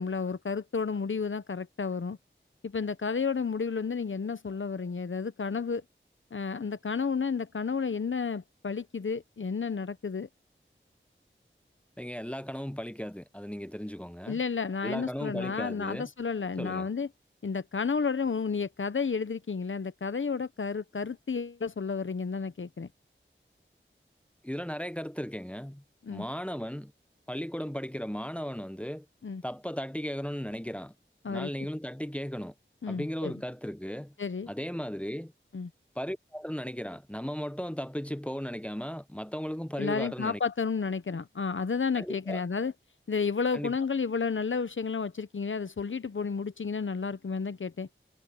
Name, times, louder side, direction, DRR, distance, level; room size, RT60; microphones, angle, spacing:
voice 1, 0.0-2.2 2.6-5.8 6.3-10.3 14.3-17.1 17.4-22.9 26.0-26.2 29.2-29.4 31.2-31.5 32.8-33.3 34.2-34.5 35.5-35.7 39.8-42.7 43.1-47.9, left 5 dB, 70° left, 0.9 m, -31 dB
voice 2, 12.0-14.4 14.8-16.1 16.6-16.9 24.4-25.8 26.1-26.9 27.3-29.1 29.4-30.9 31.3-32.5 32.9-34.1 34.5-35.3 35.9-40.4 42.0-42.4 43.5-43.7, equal, 5° left, 0.9 m, -36 dB
wide cardioid pair, 50°, 21 cm